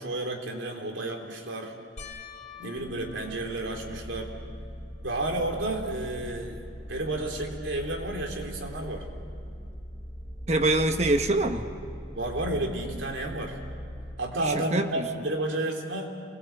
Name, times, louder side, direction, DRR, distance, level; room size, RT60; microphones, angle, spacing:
voice 1, 0.0-1.7 2.6-4.3 5.0-6.6 6.9-9.1 12.1-13.6 14.2-16.1, right 2 dB, 85° right, 2 dB, 3.7 m, -31 dB
sound 1, 2.0-4.6 5.2-5.7 6.1-6.2 9.4-9.5, left 5 dB, 40° left, 3.2 m, -48 dB
sound 2, 2.8-14.2, equal, 10° right, 2.8 m, -40 dB
voice 2, 10.5-11.7 14.4-15.2, right 2 dB, 35° right, 6 dB, 1.2 m, -25 dB
28.0 x 22.0 x 8.2 m, 2.5 s
head